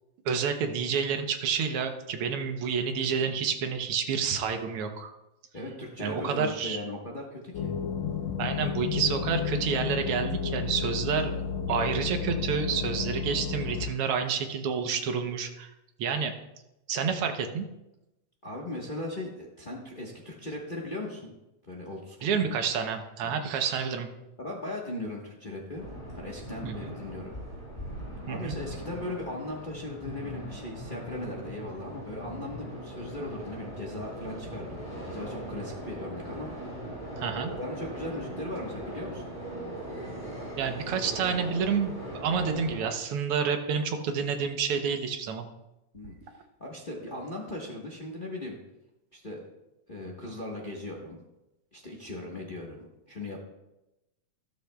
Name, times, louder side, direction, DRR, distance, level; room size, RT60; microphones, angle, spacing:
voice 1, 0.2-5.1 6.0-6.8 8.4-11.4 11.7-15.7 16.0-16.3 16.9-17.6 22.2-24.1 26.6-26.7 28.3-28.6 37.2-37.5 40.6-45.5, right 6 dB, 65° right, 6 dB, 1.5 m, -29 dB
voice 2, 5.5-7.7 17.1-17.2 18.4-21.3 21.7-22.4 23.2-23.3 24.4-27.4 28.3-37.0 37.5-39.3 45.9-48.6 49.1-49.4 49.9-51.2 51.7-53.4, left 1 dB, 55° left, -2 dB, 0.5 m, -38 dB
sound 1, 7.5-13.9, left 6 dB, 75° left, 2.0 m, -32 dB
sound 2, 25.7-42.9, right 1 dB, 15° left, 4.3 m, -40 dB
13.0 x 13.0 x 2.3 m, 0.93 s
omnidirectional pair, 3.3 m